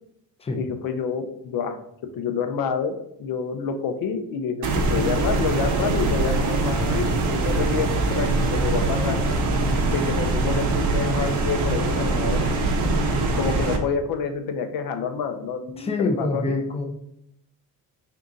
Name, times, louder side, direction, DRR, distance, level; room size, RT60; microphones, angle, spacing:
voice 1, 0.6-1.8 2.1-2.9 3.2-7.0 7.3-9.2 9.9-12.4 13.4-16.5, left 6 dB, 65° left, 7 dB, 0.6 m, -28 dB
sound 1, 4.6-13.8, right 2 dB, 50° right, 0.7 m, -23 dB
sound 2, 5.5-13.3, left 3 dB, 50° left, 1.0 m, -37 dB
voice 2, 15.8-16.9, left 3 dB, 15° left, 3 dB, 0.5 m, -25 dB
3.8 x 2.8 x 3.7 m, 0.75 s
cardioid pair, 120°, 37 cm